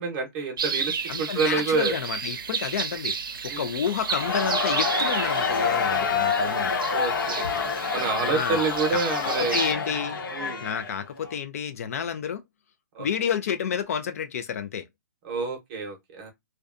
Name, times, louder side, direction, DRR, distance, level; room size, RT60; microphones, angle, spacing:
voice 1, 0.0-2.0 3.5-3.7 6.9-7.4 7.9-9.6 10.3-10.6 12.9-13.1 15.2-16.3, right 4 dB, 30° right, 0.8 m, -28 dB
sound 1, 0.6-9.7, right 6 dB, 85° right, 0.5 m, -32 dB
voice 2, 1.1-6.8 8.2-8.6 8.9-10.2 10.6-12.4 13.0-14.8, left 7 dB, 45° left, 0.4 m, -30 dB
Crowd, 4.0-11.3, left 5 dB, 85° left, 0.9 m, -27 dB
2.6 x 2.2 x 2.4 m
hypercardioid pair, 160°, 11 cm